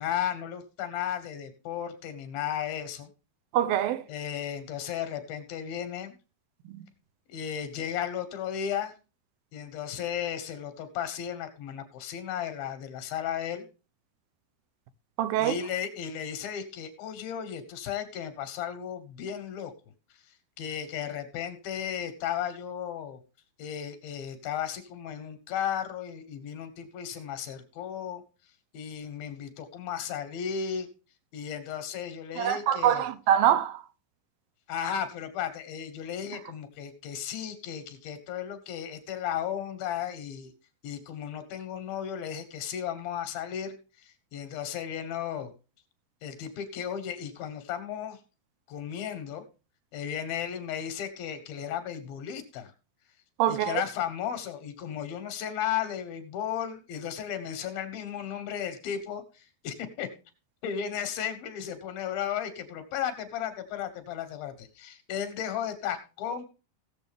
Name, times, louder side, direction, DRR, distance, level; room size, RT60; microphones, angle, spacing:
voice 1, 0.0-3.1 4.1-6.1 7.3-8.9 9.5-13.6 15.4-19.7 20.6-23.2 23.6-28.2 28.7-30.9 31.3-33.1 34.7-40.5 40.8-43.7 44.0-45.5 46.2-48.2 48.7-49.4 49.9-52.7 53.5-60.1 60.6-66.4, left 9 dB, 85° left, 3.3 m, -34 dB
voice 2, 3.5-4.0 15.2-15.6 32.4-33.8 53.4-53.8, right 11 dB, 90° right, 2.6 m, -24 dB
18.0 x 7.2 x 3.4 m
omnidirectional pair, 4.1 m